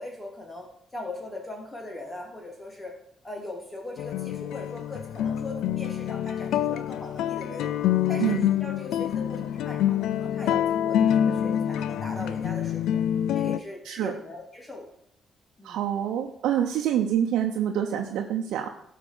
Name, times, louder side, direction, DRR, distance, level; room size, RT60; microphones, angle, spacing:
voice 1, 0.0-3.0 3.2-7.7 8.1-13.0 13.3-14.8 15.6-15.8, left 2 dB, 20° left, 0 dB, 3.3 m, -40 dB
sound 1, 4.0-13.6, left 10 dB, 85° left, 0.4 m, -26 dB
voice 2, 8.2-8.5 13.8-14.1 15.6-18.7, right 9 dB, 85° right, 2 dB, 0.9 m, -26 dB
12.5 x 5.1 x 6.2 m, 0.75 s
cardioid pair, 90°, 0 cm